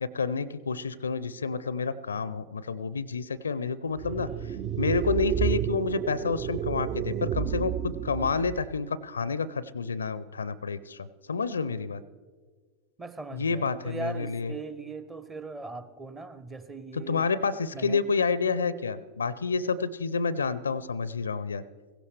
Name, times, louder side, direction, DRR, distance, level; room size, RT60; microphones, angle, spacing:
voice 1, 0.0-4.3 4.8-12.0 13.3-14.5 16.9-21.6, left 5 dB, 70° left, 18 dB, 0.4 m, -29 dB
sound 1, 3.9-8.8, right 9 dB, 35° right, 0.4 m, -31 dB
voice 2, 13.0-17.3 17.7-18.1, right 3 dB, 15° right, 11 dB, 0.8 m, -39 dB
16.5 x 16.0 x 3.3 m, 1.5 s
figure-of-eight pair, 90°, 0 cm